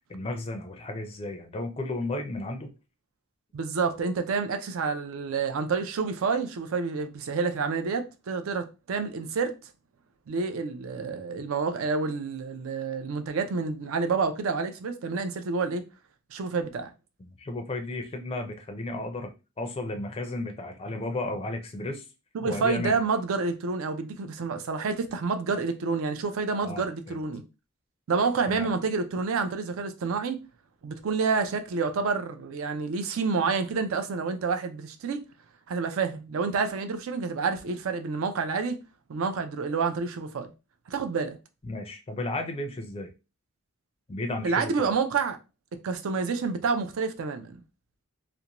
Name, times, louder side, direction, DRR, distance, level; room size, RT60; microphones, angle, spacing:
voice 1, 0.1-2.7 17.2-22.1 22.4-23.0 26.6-27.2 28.5-28.7 41.6-43.1 44.1-44.9, left 2 dB, 25° left, 0.4 m, -34 dB
voice 2, 3.5-9.5 10.3-15.8 16.3-16.9 22.3-27.4 28.1-30.4 30.8-35.2 35.7-38.8 39.1-40.5 40.9-41.4 44.4-45.4 45.8-47.6, right 4 dB, 70° right, 0.4 m, -28 dB
2.5 x 2.1 x 2.9 m
head